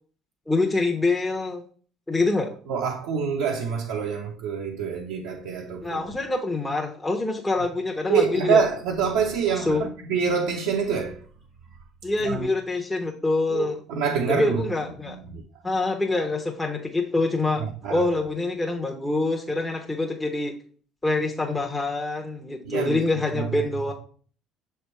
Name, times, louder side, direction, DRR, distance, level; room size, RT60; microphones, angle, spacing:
voice 1, 0.5-1.6 2.1-2.5 5.8-8.6 9.6-9.8 12.0-13.8 14.3-15.2 15.6-20.5 21.0-23.9, left 2 dB, 15° left, 0.9 m, -25 dB
voice 2, 2.7-6.0 8.1-11.2 12.2-12.5 13.5-14.6 15.1-15.4 17.6-18.1 22.7-23.0 23.3-23.6, right 6 dB, 75° right, 0.7 m, -26 dB
6.4 x 3.4 x 4.3 m
hypercardioid pair, 60°, 0 cm